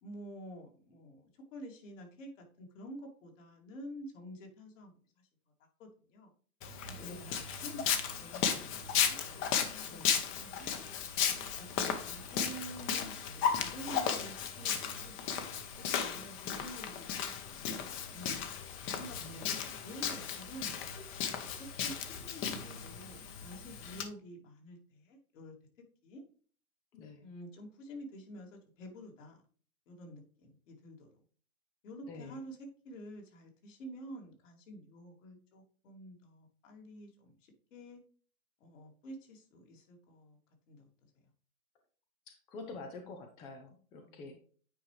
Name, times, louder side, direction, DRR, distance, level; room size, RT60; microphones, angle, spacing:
voice 1, 0.0-2.3 2.6-5.3 5.8-6.3 6.9-10.7 11.6-15.2 15.8-18.5 18.9-19.2 19.5-21.0 21.6-25.5 26.0-26.2 27.2-29.4 29.9-31.1 31.8-38.0 38.6-40.4 40.7-41.1 44.0-44.4, equal, 60° left, 1 dB, 2.8 m, -49 dB
Walk footsteps, 6.6-24.0, left 7 dB, 30° left, 1.0 m, -35 dB
voice 2, 7.0-7.4 9.9-10.1 19.2-19.6 26.9-27.2 32.1-32.4 42.3-44.4, left 3 dB, 10° left, 5 dB, 0.3 m, -47 dB
9.0 x 4.6 x 3.2 m, 0.43 s
hypercardioid pair, 120°, 43 cm